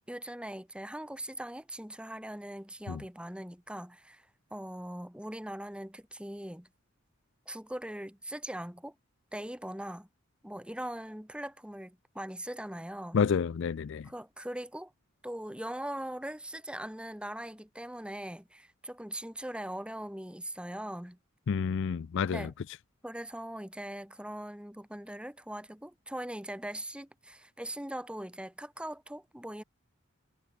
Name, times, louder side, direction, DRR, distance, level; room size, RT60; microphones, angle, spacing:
voice 1, 0.1-6.7 7.5-8.9 9.3-10.1 10.4-13.2 14.0-14.9 15.2-21.2 22.3-22.5 23.0-29.6, right 1 dB, 5° right, 2.5 m, -41 dB
voice 2, 13.1-14.1 21.5-22.5, left 6 dB, 60° left, 0.4 m, -29 dB
head